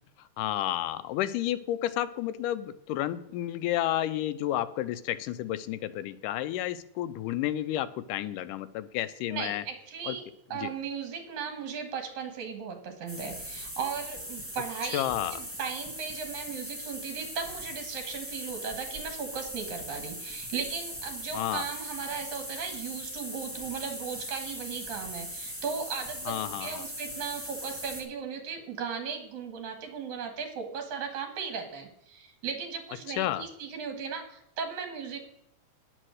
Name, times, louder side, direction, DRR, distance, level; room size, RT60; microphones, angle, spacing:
voice 1, 0.4-9.6 10.1-10.2 10.5-10.7 14.8-15.3 21.3-21.7 26.3-26.8 33.2-33.4, left 13 dB, 90° left, 14 dB, 2.2 m, -31 dB
voice 2, 9.3-35.2, right 6 dB, 70° right, 5 dB, 2.9 m, -37 dB
sound 1, 13.1-28.0, equal, 5° left, 1.5 m, -40 dB
10.0 x 8.7 x 6.4 m, 0.75 s
omnidirectional pair, 3.6 m